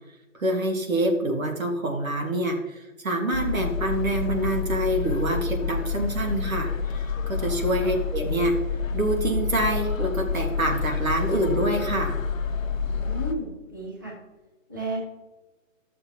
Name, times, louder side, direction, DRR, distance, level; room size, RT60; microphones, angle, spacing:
voice 1, 0.3-8.6 8.9-12.2, right 1 dB, 90° right, 3 dB, 2.0 m, -26 dB
sound 1, 3.3-13.3, left 5 dB, 75° left, 0.8 m, -28 dB
voice 2, 12.9-14.2 14.7-15.0, right 1 dB, 15° right, -3 dB, 0.6 m, -33 dB
12.5 x 6.6 x 2.9 m, 1.2 s
hypercardioid pair, 170°, 40 cm